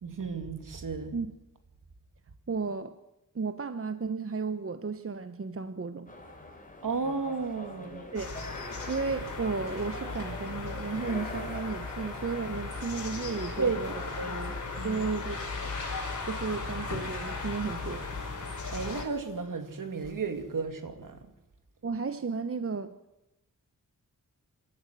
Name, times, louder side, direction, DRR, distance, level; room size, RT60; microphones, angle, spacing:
voice 1, 0.0-1.1 6.8-8.1 13.6-15.0 18.7-21.3, right 4 dB, 70° right, 2.5 m, -34 dB
voice 2, 2.5-2.9 3.3-6.1 8.1-8.3 8.9-14.0 14.8-15.7 16.2-18.1 21.8-22.9, right 4 dB, 40° right, 1.0 m, -34 dB
sound 1, 6.1-18.3, left 2 dB, 25° left, 4.5 m, -45 dB
sound 2, 8.1-19.0, left 3 dB, 60° left, 5.0 m, -37 dB
26.0 x 13.5 x 7.6 m
wide cardioid pair, 75°, 33 cm